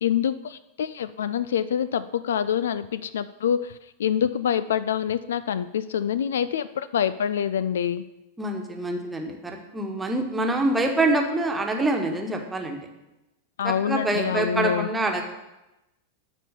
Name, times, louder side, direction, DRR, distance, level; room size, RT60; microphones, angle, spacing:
voice 1, 0.0-8.0 13.6-14.9, left 9 dB, 65° left, 15 dB, 0.3 m, -26 dB
voice 2, 8.4-12.8 13.6-15.2, right 2 dB, 10° right, 2 dB, 1.4 m, -25 dB
12.0 x 4.3 x 6.8 m, 0.97 s
figure-of-eight pair, 90°, 0 cm